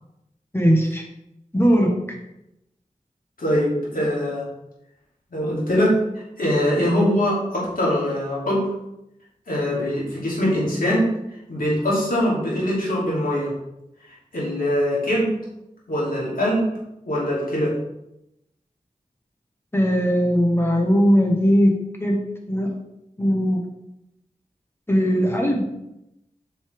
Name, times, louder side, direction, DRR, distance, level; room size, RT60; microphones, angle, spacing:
voice 1, 0.5-1.0 1.5-1.9 19.7-22.2 22.5-22.7 23.2-23.6 24.9-25.6, equal, 15° left, 1 dB, 1.6 m, -19 dB
voice 2, 3.4-4.5 5.3-6.0 6.4-8.7 9.5-11.1 11.5-13.5 14.3-15.3 15.9-16.7 17.0-17.7, equal, 85° left, -6 dB, 2.9 m, -22 dB
8.2 x 5.6 x 3.6 m, 0.87 s
wide cardioid pair, 65°, 14 cm